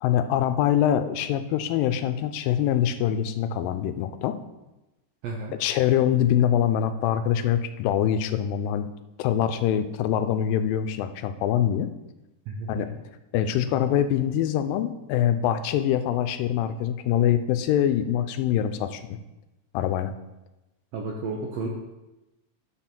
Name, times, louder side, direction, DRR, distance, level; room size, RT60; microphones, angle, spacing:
voice 1, 0.0-4.4 5.6-8.9 9.2-11.9 12.7-12.9 13.3-19.0 19.7-20.1, left 10 dB, 85° left, 10 dB, 2.3 m, -24 dB
voice 2, 5.2-5.6 12.5-12.9 20.9-21.7, right 3 dB, 80° right, 0 dB, 1.5 m, -32 dB
10.5 x 4.2 x 5.9 m, 1.0 s
omnidirectional pair, 4.0 m